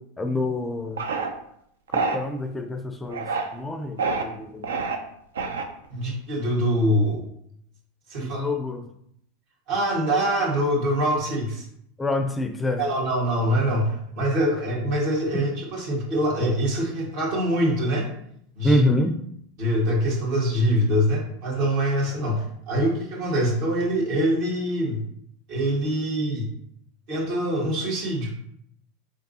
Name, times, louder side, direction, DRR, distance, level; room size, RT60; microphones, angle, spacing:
voice 1, 0.2-1.0 1.9-4.7 8.2-8.9 12.0-12.8 15.3-15.4 18.6-19.2, left 1 dB, 10° left, 6 dB, 0.4 m, -26 dB
sound 1, 1.0-1.3 1.9-2.2 3.1-3.5 4.0-4.2 4.6-5.0 5.4-5.9, right 4 dB, 85° right, 0.5 m, -26 dB
voice 2, 5.9-7.2 8.1-8.5 9.7-11.6 12.8-18.1 18.6-18.8 19.6-25.0 25.5-26.5 27.1-28.3, equal, 60° right, -2 dB, 1.8 m, -24 dB
5.3 x 3.4 x 2.7 m, 0.71 s
hypercardioid pair, 100°, 0 cm